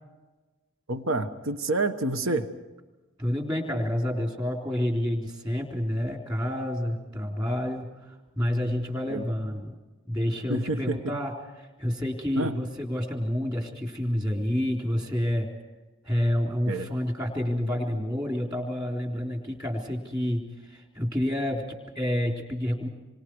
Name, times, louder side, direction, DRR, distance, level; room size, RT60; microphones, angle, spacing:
voice 1, 0.9-2.6 9.1-9.2 10.5-11.2 12.4-12.6 16.7-16.9, right 2 dB, 65° right, 9 dB, 1.2 m, -28 dB
voice 2, 3.2-9.8 10.1-15.5 16.0-22.9, left 1 dB, 20° right, 1 dB, 3.6 m, -29 dB
27.5 x 24.5 x 4.8 m, 1.2 s
head